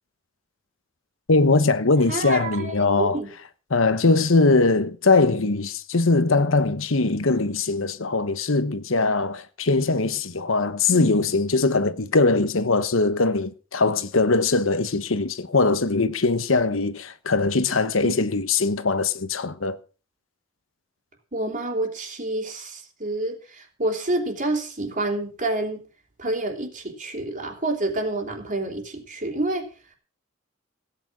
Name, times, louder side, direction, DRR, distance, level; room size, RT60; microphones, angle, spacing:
voice 1, 1.3-3.2 3.7-19.8, left 3 dB, 80° left, 1.1 m, -21 dB
voice 2, 2.1-3.3 10.9-11.1 18.0-18.2 21.3-25.8 26.2-29.7, right 2 dB, 40° right, 3.5 m, -28 dB
16.5 x 9.1 x 6.2 m
head